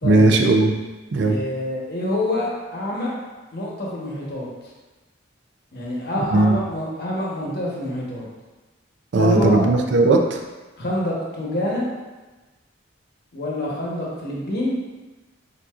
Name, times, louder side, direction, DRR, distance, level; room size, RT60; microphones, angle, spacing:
voice 1, 0.0-0.7 1.1-1.4 6.3-6.6 9.1-10.4, right 2 dB, 60° right, 3 dB, 0.4 m, -17 dB
voice 2, 1.2-3.1 3.5-4.5 5.7-8.3 9.1-9.6 10.8-11.8 13.3-14.7, left 1 dB, 55° left, -4 dB, 0.9 m, -26 dB
7.1 x 2.7 x 2.4 m, 1.2 s
head